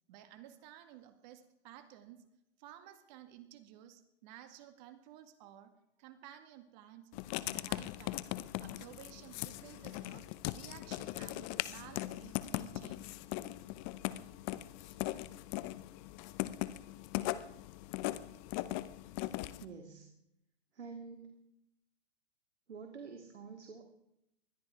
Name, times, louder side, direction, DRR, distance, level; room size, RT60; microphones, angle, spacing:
voice 1, 0.1-2.3 2.6-5.7 6.0-7.1 7.4-13.1 14.8-15.3, right 11 dB, 40° right, 9 dB, 1.9 m, -54 dB
Writing, 7.1-19.6, left 16 dB, 30° left, 0.7 m, -39 dB
voice 2, 19.6-20.1 20.7-21.3 22.7-23.8, right 5 dB, 80° right, 4 dB, 2.2 m, -48 dB
20.5 x 13.0 x 4.7 m, 0.82 s
hypercardioid pair, 125°, 34 cm